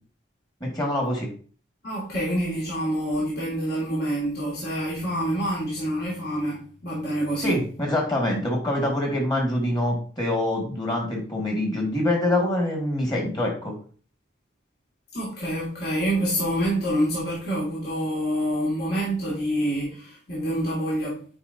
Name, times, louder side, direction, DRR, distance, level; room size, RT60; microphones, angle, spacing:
voice 1, 0.6-1.3 7.4-13.7, left 1 dB, 25° left, 1.9 m, -25 dB
voice 2, 1.8-7.6 15.1-21.2, equal, 55° left, 2.4 m, -27 dB
8.7 x 4.9 x 2.7 m
head